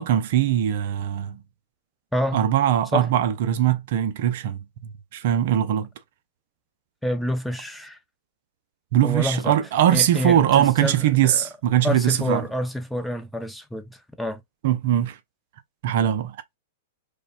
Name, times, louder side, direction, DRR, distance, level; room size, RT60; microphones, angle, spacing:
voice 1, 0.0-1.4 2.3-5.9 8.9-12.4 14.6-15.2 15.8-16.4, right 11 dB, 55° right, 0.5 m, -21 dB
voice 2, 7.0-8.0 9.0-9.6 9.9-11.5 11.8-14.4, left 1 dB, ahead, 0.6 m, -28 dB
5.0 x 2.2 x 2.3 m
hypercardioid pair, 105°, 0 cm